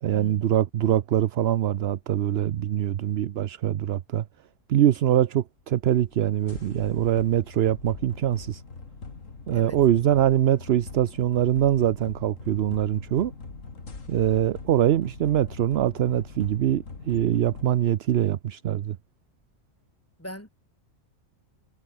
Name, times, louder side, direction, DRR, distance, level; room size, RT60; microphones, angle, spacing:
voice 1, 0.0-4.2 4.7-8.6 9.5-13.3 14.1-19.0, right 11 dB, 60° right, 0.8 m, -23 dB
sound 1, 5.8-17.6, left 4 dB, 80° left, 3.2 m, -42 dB
voice 2, 20.2-20.5, equal, 10° left, 8.1 m, -40 dB
omnidirectional pair, 1.3 m